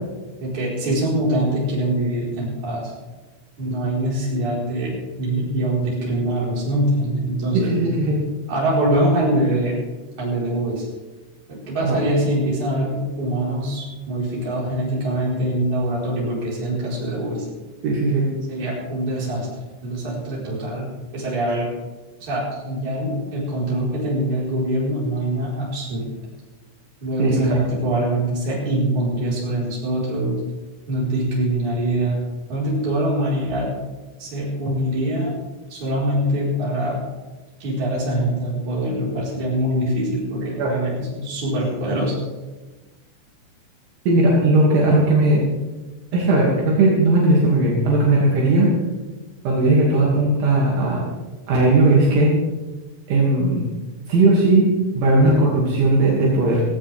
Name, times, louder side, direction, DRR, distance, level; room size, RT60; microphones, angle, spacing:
voice 1, 0.4-2.9 3.6-7.8 8.5-9.8 10.2-10.9 11.5-17.5 18.5-19.5 19.8-21.7 22.2-26.0 27.0-30.4 30.9-32.2 32.5-33.7 34.2-35.3 35.7-37.0 37.6-42.1, right 1 dB, 35° right, -5 dB, 5.8 m, -23 dB
voice 2, 7.5-8.2 11.8-12.0 17.8-18.3 27.2-27.3 40.6-40.7 44.1-45.4 46.1-48.7 49.4-51.0 51.5-52.3 53.1-53.6 54.1-54.7 54.9-56.6, right 2 dB, 70° right, -5 dB, 4.7 m, -17 dB
17.5 x 17.0 x 3.6 m, 1.2 s
omnidirectional pair, 5.8 m